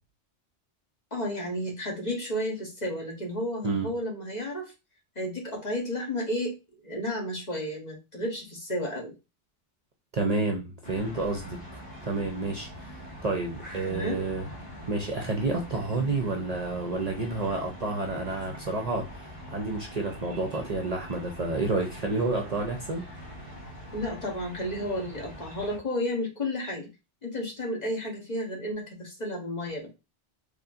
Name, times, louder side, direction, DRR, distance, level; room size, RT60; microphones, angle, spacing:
voice 1, 1.1-4.7 5.1-6.6 6.8-9.1 13.8-14.3 16.0-16.1 23.9-26.9 27.2-29.9, left 1 dB, 40° left, -1 dB, 1.2 m, -32 dB
voice 2, 10.1-11.6 12.0-12.7 13.2-14.5 14.9-19.1 19.5-23.0, right 3 dB, 45° right, 2 dB, 0.6 m, -29 dB
sound 1, 10.8-25.8, equal, 20° left, 2.3 m, -43 dB
4.1 x 3.2 x 2.5 m, 0.26 s
omnidirectional pair, 1.1 m